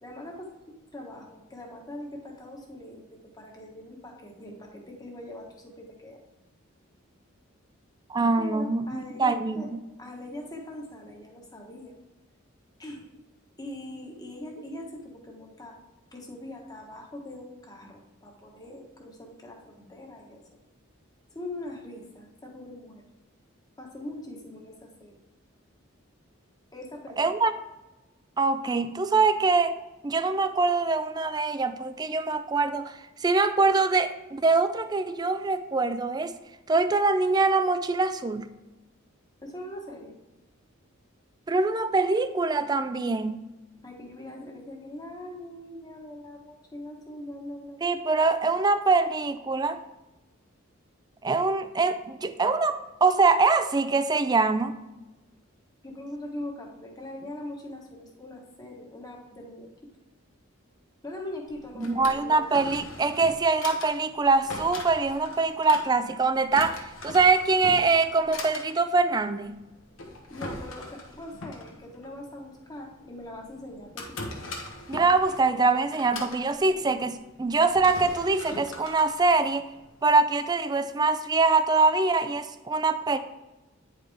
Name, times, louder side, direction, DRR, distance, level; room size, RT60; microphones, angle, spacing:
voice 1, 0.0-6.2 8.4-9.7 10.0-11.9 12.8-13.0 13.6-15.8 16.1-20.4 21.3-23.1 23.8-25.2 26.7-27.3 39.4-40.1 43.8-47.9 55.8-59.7 61.0-62.5 70.3-74.3, left 1 dB, 20° left, 0 dB, 1.2 m, -41 dB
voice 2, 8.1-9.8 27.2-27.5 28.4-29.8 30.0-36.3 36.7-38.5 41.5-43.4 47.8-49.8 51.2-54.8 61.8-69.6 74.9-79.7 80.0-83.2, right 3 dB, 20° right, 11 dB, 0.3 m, -24 dB
Drawer open or close, 61.5-80.0, left 2 dB, 75° left, 1.2 m, -41 dB
9.4 x 4.9 x 3.5 m, 1.0 s
head